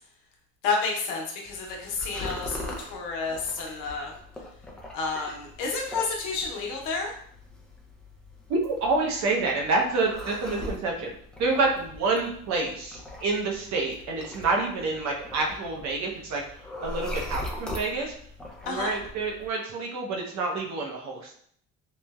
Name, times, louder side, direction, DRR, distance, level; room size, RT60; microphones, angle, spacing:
voice 1, 0.6-4.1 4.9-7.1 18.7-18.9, left 4 dB, 80° left, 0 dB, 0.8 m, -30 dB
sound 1, 1.4-19.5, left 1 dB, 5° left, 0.4 m, -41 dB
voice 2, 8.5-11.1 11.4-16.4 16.8-18.1 18.7-21.4, right 3 dB, 65° right, 0 dB, 0.7 m, -28 dB
3.0 x 2.0 x 2.3 m, 0.64 s
cardioid pair, 115°, 31 cm